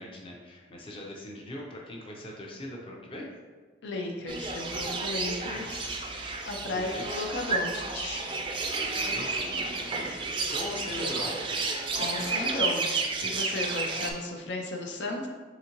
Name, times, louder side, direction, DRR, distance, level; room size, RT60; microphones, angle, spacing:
voice 1, 0.0-3.3 6.7-7.0 8.8-11.4, left 1 dB, 30° left, -2 dB, 0.6 m, -41 dB
voice 2, 3.8-6.1 6.5-8.2 11.9-12.8 13.2-15.3, left 2 dB, 75° left, 1 dB, 0.6 m, -34 dB
sound 1, 4.3-14.1, right 3 dB, 25° right, 0.3 m, -31 dB
4.0 x 3.6 x 2.9 m, 1.5 s
head